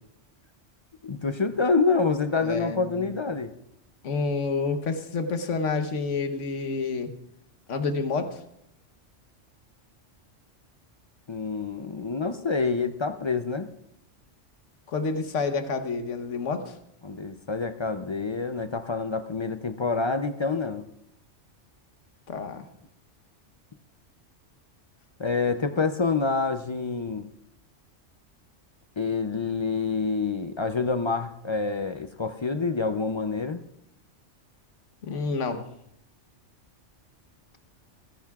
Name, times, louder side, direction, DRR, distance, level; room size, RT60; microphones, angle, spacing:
voice 1, 1.0-3.5 11.3-13.7 17.0-20.8 25.2-27.3 29.0-33.6, left 4 dB, 45° left, 9 dB, 0.3 m, -27 dB
voice 2, 2.4-3.1 4.0-7.1 7.7-8.4 14.9-16.8 22.3-22.6 35.0-35.7, left 4 dB, 80° left, 7 dB, 1.4 m, -29 dB
27.0 x 10.5 x 2.4 m, 0.78 s
omnidirectional pair, 1.3 m